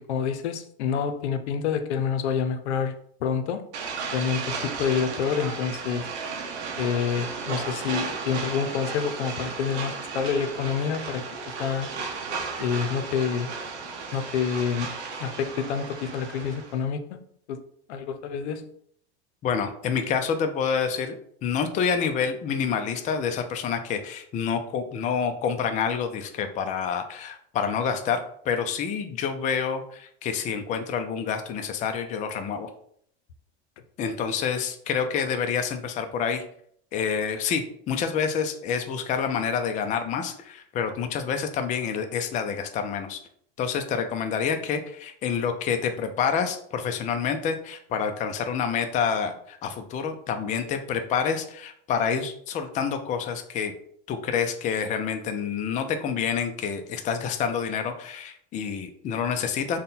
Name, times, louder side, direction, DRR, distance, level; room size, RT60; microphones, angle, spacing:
voice 1, 0.0-2.9 3.2-3.6 4.1-6.1 6.8-11.2 11.6-11.9 12.6-13.6 14.1-17.2 17.5-17.6 17.9-18.7, left 7 dB, 90° left, 8 dB, 0.6 m, -28 dB
sound 1, 3.7-16.8, right 4 dB, 90° right, 0.9 m, -34 dB
voice 2, 19.4-32.7 34.0-36.4 36.9-43.2 43.6-53.7 54.1-59.8, left 6 dB, 25° left, 7 dB, 0.4 m, -28 dB
3.7 x 2.2 x 4.0 m, 0.64 s
supercardioid pair, 125°, 32 cm